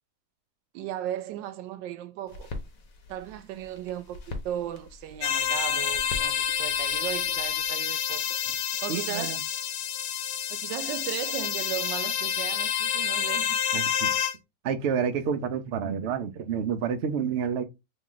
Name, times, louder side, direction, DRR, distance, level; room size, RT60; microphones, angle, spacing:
voice 1, 0.7-2.5 3.1-8.4 8.8-9.4 10.5-13.6, right 11 dB, 85° right, 1.3 m, -36 dB
sound 1, 2.3-7.7, left 2 dB, 55° left, 1.2 m, -43 dB
sound 2, 5.2-14.4, left 9 dB, 80° left, 1.3 m, -28 dB
voice 2, 8.9-9.4 13.7-14.1 14.6-17.6, right 7 dB, 65° right, 0.6 m, -29 dB
3.1 x 3.1 x 3.8 m
omnidirectional pair, 1.9 m